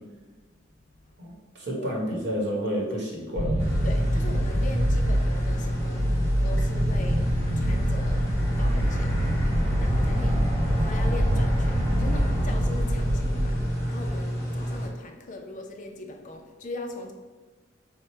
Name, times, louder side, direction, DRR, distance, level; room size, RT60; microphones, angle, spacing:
voice 1, 1.2-3.7, equal, 60° right, -2 dB, 1.1 m, -30 dB
sound 1, 3.4-13.7, equal, 35° right, 0.5 m, -25 dB
sound 2, 3.6-14.9, equal, 15° left, 0.9 m, -30 dB
voice 2, 3.8-6.1 6.4-7.3 7.6-8.3 8.6-9.2 9.8-10.4 10.8-13.6 13.9-17.1, left 2 dB, 40° left, 3 dB, 0.4 m, -40 dB
4.6 x 2.1 x 4.3 m, 1.3 s
head